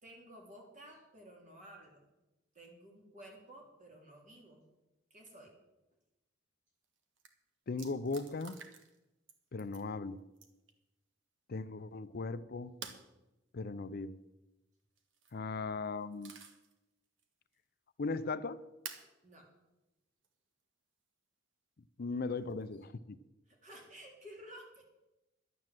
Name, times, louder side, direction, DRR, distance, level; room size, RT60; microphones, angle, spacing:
voice 1, 0.0-2.1 2.5-4.6 5.1-5.5 19.2-19.5 23.5-24.8, right 1 dB, 40° right, 0 dB, 3.6 m, -54 dB
sound 1, 6.8-6.9 7.2-7.3 7.8-9.0 9.3-9.9 10.4-10.7 12.8-13.1 15.0-15.4 15.8-16.7 17.2-17.3 18.8-19.1 20.2-20.3 22.4-22.8, right 6 dB, 75° right, 1.5 m, -49 dB
voice 2, 7.7-8.6 9.5-10.2 11.5-12.7 13.5-14.2 15.3-16.3 18.0-18.6 22.0-23.2, left 3 dB, 50° left, 14 dB, 0.5 m, -38 dB
12.0 x 9.6 x 7.5 m, 1.0 s
head